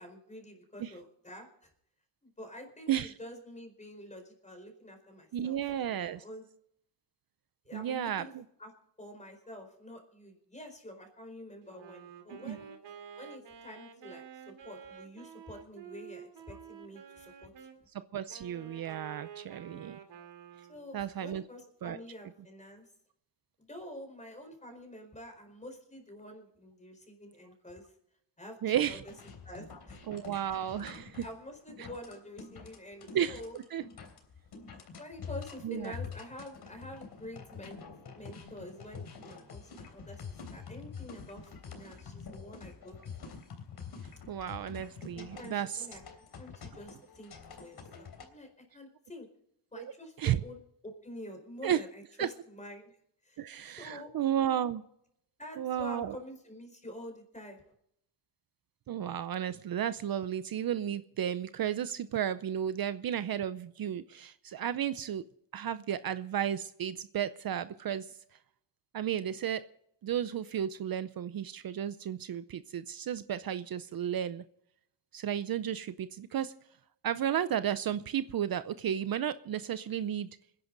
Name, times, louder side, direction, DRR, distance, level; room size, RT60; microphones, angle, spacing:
voice 1, 0.0-1.7 2.2-6.4 7.6-8.3 8.6-8.7 9.0-12.7 13.2-17.7 20.7-22.8 23.6-27.9 28.4-29.0 29.4-30.0 31.2-33.6 35.0-37.8 38.1-43.0 45.1-46.0 46.4-47.3 47.6-49.3 49.7-53.0 53.2-53.4 53.8-54.1 55.4-57.6, left 1 dB, 15° left, 4 dB, 4.5 m, -47 dB
voice 2, 5.3-6.2 7.7-8.4 12.4-12.6 17.9-20.0 20.9-21.4 21.8-22.0 28.6-29.0 30.1-31.2 31.8-31.9 33.1-33.8 35.6-36.0 44.3-45.9 49.8-49.9 50.2-50.4 51.6-51.8 52.2-52.3 53.4-54.8 55.6-56.2 58.9-65.2 65.5-68.2 68.9-69.7 70.0-74.4 75.1-76.5 77.0-80.3, right 10 dB, 55° right, 13 dB, 0.7 m, -33 dB
Wind instrument woodwind instrument, 11.6-17.8 18.3-20.9, right 7 dB, 75° right, 2.4 m, -50 dB
sound 1, 29.0-48.3, left 5 dB, 60° left, 3.4 m, -47 dB
26.5 x 11.0 x 3.9 m, 0.76 s
cardioid pair, 125°, 43 cm